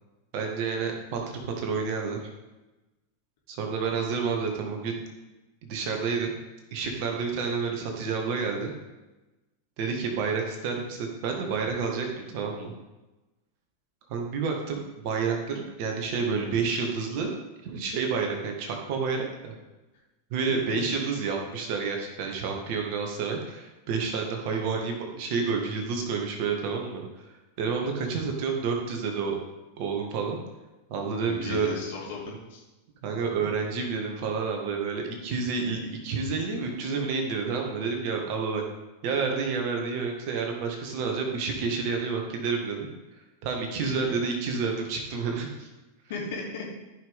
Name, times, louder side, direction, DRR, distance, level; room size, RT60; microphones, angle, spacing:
voice 1, 0.3-2.2 3.5-5.0 5.6-6.3 6.7-8.7 9.8-12.7 14.1-17.3 17.6-19.5 20.3-27.3 27.6-29.4 29.8-30.4 30.9-31.7 33.0-38.6 39.0-42.9 43.4-45.7, right 5 dB, 45° right, 2 dB, 1.8 m, -29 dB
voice 2, 20.5-20.8 31.2-32.6 43.8-44.1 46.1-46.7, left 3 dB, 55° left, -4 dB, 3.1 m, -36 dB
14.0 x 5.7 x 3.6 m, 1.1 s
figure-of-eight pair, 90°, 0 cm